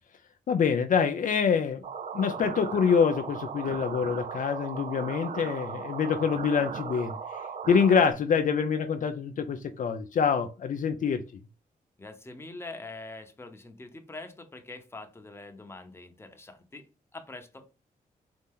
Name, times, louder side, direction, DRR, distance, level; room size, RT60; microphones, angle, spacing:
voice 1, 0.5-1.8 2.1-7.2 7.7-11.2, left 6 dB, 60° left, 0.5 m, -25 dB
sound 1, 1.8-8.1, right 6 dB, 50° right, 0.4 m, -37 dB
voice 2, 12.0-16.9 17.1-17.6, left 2 dB, 15° left, 0.8 m, -44 dB
4.2 x 2.8 x 3.7 m
cardioid pair, 90°, 15 cm